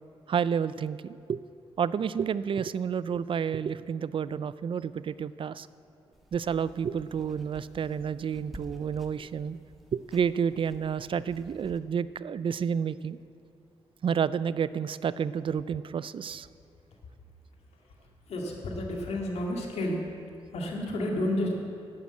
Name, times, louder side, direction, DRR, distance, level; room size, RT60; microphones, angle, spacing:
voice 1, 0.3-1.4 1.8-5.7 6.3-9.6 9.9-13.2 14.0-16.5, right 7 dB, 55° right, 17 dB, 0.4 m, -30 dB
sound 1, 6.1-11.8, equal, ahead, 1.5 m, -51 dB
voice 2, 18.3-20.1 20.5-21.5, left 1 dB, 80° left, 0 dB, 2.1 m, -30 dB
11.0 x 8.6 x 7.8 m, 2.7 s
cardioid pair, 70°, 11 cm